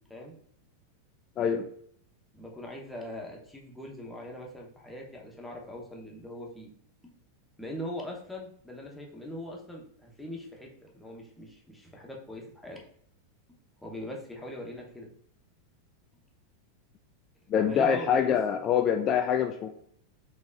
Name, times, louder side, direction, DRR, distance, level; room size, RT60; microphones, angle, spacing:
voice 1, 1.4-1.7 17.5-19.7, left 8 dB, 35° left, 7 dB, 0.3 m, -25 dB
voice 2, 2.3-6.7 7.0-7.1 7.6-12.9 13.5-15.1 17.7-18.3, left 1 dB, 5° left, -1 dB, 0.9 m, -41 dB
4.1 x 3.0 x 2.4 m, 0.64 s
hypercardioid pair, 90°, 0 cm